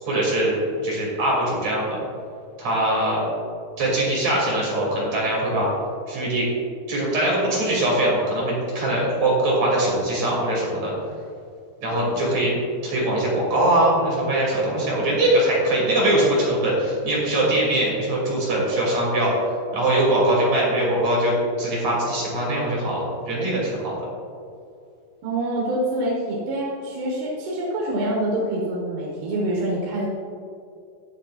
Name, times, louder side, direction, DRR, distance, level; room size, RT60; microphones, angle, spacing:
voice 1, 0.0-2.0 2.6-3.2 3.8-5.7 6.1-6.5 6.9-10.9 11.8-12.5 12.8-19.3 19.7-24.0, right 1 dB, 45° right, -5 dB, 3.6 m, -22 dB
voice 2, 25.2-30.1, right 1 dB, 85° right, -3 dB, 3.4 m, -26 dB
16.0 x 8.9 x 2.4 m, 2.4 s
omnidirectional pair, 4.5 m